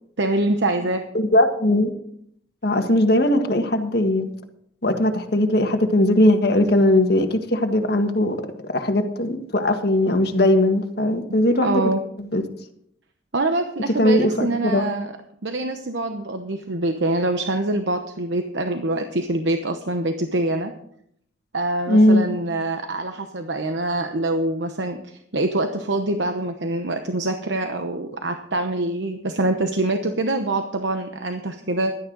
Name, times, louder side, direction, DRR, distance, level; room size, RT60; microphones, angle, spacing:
voice 1, 0.2-1.0 11.6-12.0 13.3-15.1 15.4-20.7 21.5-31.9, right 2 dB, 75° right, 6 dB, 1.0 m, -25 dB
voice 2, 1.1-1.9 2.6-4.3 4.8-8.4 8.7-11.8 12.2-12.4 14.0-14.8 21.9-22.2, left 1 dB, 55° left, 5 dB, 1.6 m, -19 dB
16.5 x 12.0 x 3.9 m, 0.70 s
head